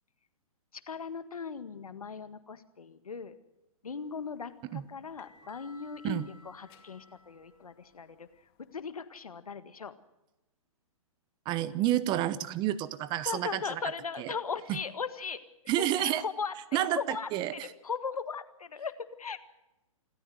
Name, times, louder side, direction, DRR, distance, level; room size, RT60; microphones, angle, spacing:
voice 1, 0.9-3.4 3.8-8.3 8.7-9.9 13.3-15.4 15.8-17.3 17.6-19.5, left 5 dB, 90° left, 11 dB, 1.8 m, -38 dB
sound 1, 4.1-8.9, left 4 dB, 35° left, 2.4 m, -60 dB
voice 2, 11.5-13.6 14.2-14.3 15.7-16.2 16.7-17.5, right 13 dB, 25° right, 17 dB, 0.9 m, -29 dB
26.0 x 14.0 x 7.8 m, 0.96 s
hypercardioid pair, 135°, 18 cm